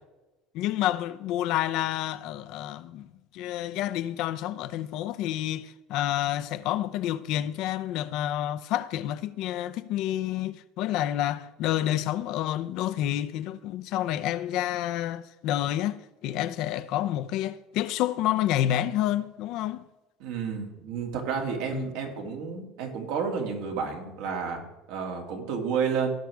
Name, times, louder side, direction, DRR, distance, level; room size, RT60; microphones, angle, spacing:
voice 1, 0.5-16.0 16.2-19.8 21.7-21.9, left 12 dB, 65° left, 0.6 m, -29 dB
voice 2, 20.2-26.1, right 6 dB, 75° right, 2.4 m, -31 dB
16.5 x 6.3 x 3.5 m
supercardioid pair, 120°, 0 cm